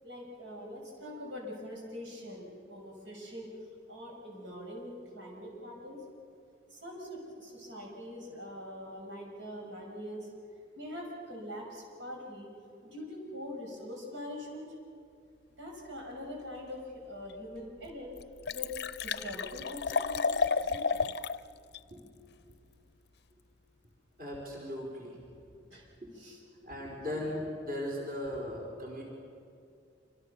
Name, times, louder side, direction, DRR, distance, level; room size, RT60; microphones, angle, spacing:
voice 1, 0.0-3.5 3.9-6.0 6.7-10.3 10.8-12.5 12.8-14.7 15.6-18.1 18.5-18.7 19.0-21.0 25.7-25.9 26.1-26.4, left 1 dB, 85° right, -1 dB, 6.2 m, -43 dB
Liquid, 17.3-17.4 17.9-18.0 18.2-21.4 21.7-21.8, left 5 dB, 60° left, 0.5 m, -31 dB
voice 2, 24.2-25.2 26.0-26.1 26.6-29.0, left 1 dB, 50° right, -1 dB, 4.9 m, -38 dB
27.0 x 25.5 x 6.9 m, 2.4 s
head